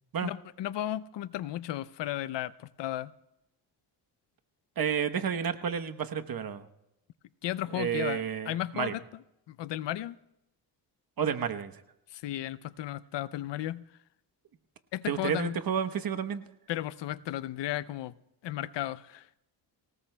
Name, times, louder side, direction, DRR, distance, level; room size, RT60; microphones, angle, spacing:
voice 1, 0.2-3.1 7.4-9.0 9.5-10.2 12.1-13.8 14.9-15.6 16.7-18.1 18.4-19.3, left 13 dB, 85° left, 17 dB, 0.6 m, -34 dB
voice 2, 4.8-6.7 7.7-9.0 11.2-11.8 15.1-16.4, right 8 dB, 55° right, 8 dB, 1.0 m, -31 dB
24.5 x 18.5 x 2.2 m, 0.85 s
cardioid pair, 80°, 41 cm